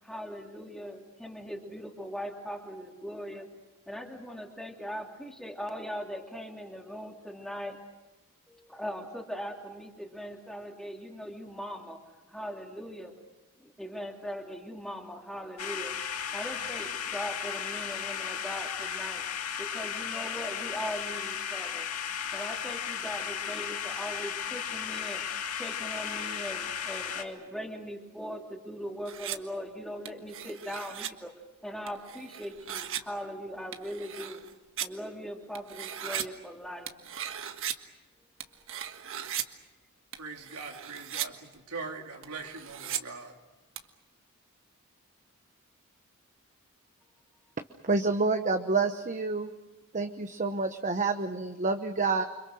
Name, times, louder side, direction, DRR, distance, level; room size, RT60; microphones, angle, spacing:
voice 1, 0.0-3.5 3.9-7.8 8.5-12.0 12.3-13.1 13.6-16.0 16.3-19.2 19.6-21.9 22.3-25.2 25.5-31.3 31.6-34.4 34.8-36.9, equal, ahead, 1 dB, 3.0 m, -40 dB
sound 1, 15.6-27.2, left 8 dB, 80° left, 2.2 m, -35 dB
sound 2, 29.1-29.4 30.1-31.1 31.9-33.0 33.7-34.9 35.5-36.2 36.9-37.7 38.4-39.4 40.1-41.3 41.5-41.6 42.2-43.0 43.8-43.9, right 10 dB, 60° right, 1.5 m, -37 dB
voice 2, 40.2-43.4, right 4 dB, 85° right, 2 dB, 3.7 m, -41 dB
voice 3, 47.8-49.5 49.9-52.2, right 3 dB, 35° right, 7 dB, 1.0 m, -28 dB
29.0 x 26.0 x 6.4 m, 1.1 s
head